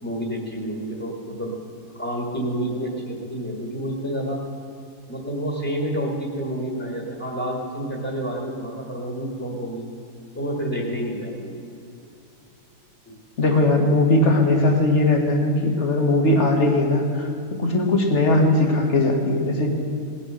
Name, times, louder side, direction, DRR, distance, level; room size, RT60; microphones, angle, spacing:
voice 1, 0.0-1.5 1.9-4.4 5.1-9.9 10.3-11.6 13.1-13.7, right 1 dB, 10° left, -1 dB, 1.7 m, -29 dB
voice 2, 13.4-17.3 17.6-19.7, left 2 dB, 55° left, 2 dB, 1.9 m, -19 dB
18.5 x 7.2 x 6.3 m, 2.5 s
omnidirectional pair, 1.5 m